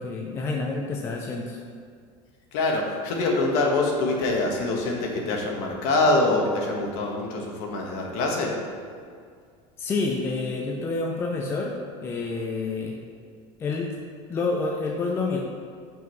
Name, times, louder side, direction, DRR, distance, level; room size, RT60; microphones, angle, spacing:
voice 1, 0.0-1.6 9.8-11.7 12.0-13.0 13.6-13.9 14.3-15.4, left 3 dB, 15° left, 0 dB, 0.5 m, -28 dB
voice 2, 2.5-8.5, left 2 dB, 55° left, 0 dB, 1.5 m, -24 dB
7.5 x 6.0 x 4.6 m, 2.1 s
cardioid pair, 175°, 14 cm